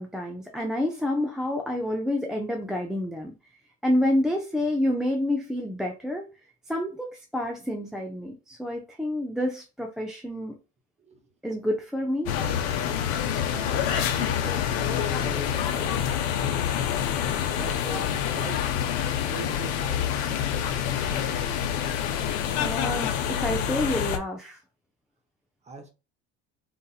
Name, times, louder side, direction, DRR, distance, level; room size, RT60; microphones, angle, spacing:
voice 1, 0.0-3.3 3.8-6.3 6.7-10.5 11.4-12.3 22.6-24.6, left 1 dB, ahead, 0.3 m, -28 dB
sound 1, 12.2-24.2, left 9 dB, 90° left, 0.8 m, -27 dB
voice 2, 13.5-18.7 19.2-20.7 21.1-21.6 25.7-25.9, right 3 dB, 20° right, 0.8 m, -42 dB
4.0 x 2.6 x 2.3 m
cardioid pair, 130°, 32 cm